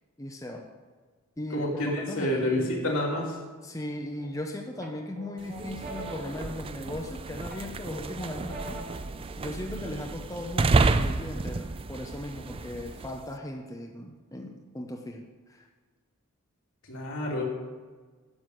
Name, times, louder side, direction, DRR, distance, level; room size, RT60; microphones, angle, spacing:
voice 1, 0.2-0.7 1.4-2.7 3.6-15.7, left 1 dB, 15° left, 2 dB, 0.7 m, -38 dB
voice 2, 1.5-3.4 16.9-17.4, left 1 dB, 70° left, -3 dB, 2.9 m, -28 dB
sound 1, 3.8-4.4 4.8-7.1 7.5-9.1, right 2 dB, 40° right, 1.3 m, -44 dB
sound 2, 5.4-13.3, right 3 dB, 25° right, 0.4 m, -30 dB
9.8 x 6.1 x 7.8 m, 1.4 s
head